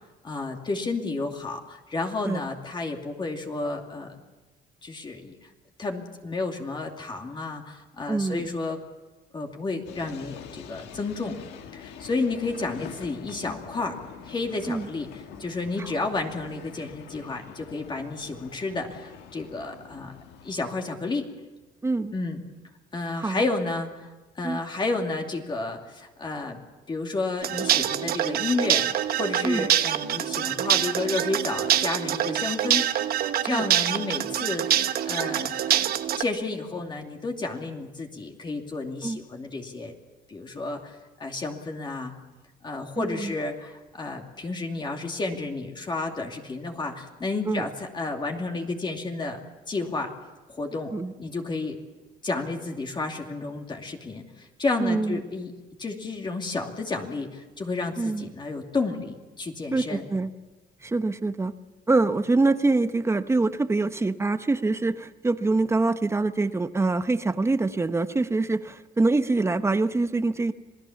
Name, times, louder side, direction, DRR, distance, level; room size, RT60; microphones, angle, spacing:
voice 1, 0.2-4.2 4.8-5.4 5.8-8.8 9.3-11.4 11.7-14.0 14.2-20.1 20.4-21.3 22.1-22.4 22.9-24.1 24.3-26.6 26.9-28.9 29.2-32.9 33.4-35.9 36.2-39.9 40.3-42.1 42.6-49.4 49.7-50.1 50.5-50.9 51.2-51.8 52.2-55.5 55.8-60.1, left 3 dB, 25° left, 2 dB, 2.6 m, -31 dB
voice 2, 8.1-8.5 14.7-14.9 21.8-22.1 23.2-23.4 24.4-24.6 29.4-29.7 33.5-33.6 39.0-39.2 43.0-43.3 47.4-47.7 50.9-51.1 54.8-55.2 58.0-58.3 59.7-60.3 60.8-61.5 61.9-70.5, right 3 dB, 15° right, 10 dB, 1.0 m, -25 dB
sound 1, 9.9-20.7, left 8 dB, 85° left, 1.8 m, -45 dB
sound 2, 27.4-36.2, right 11 dB, 65° right, 1.1 m, -25 dB
27.0 x 18.0 x 7.2 m, 1.2 s
cardioid pair, 110°, 17 cm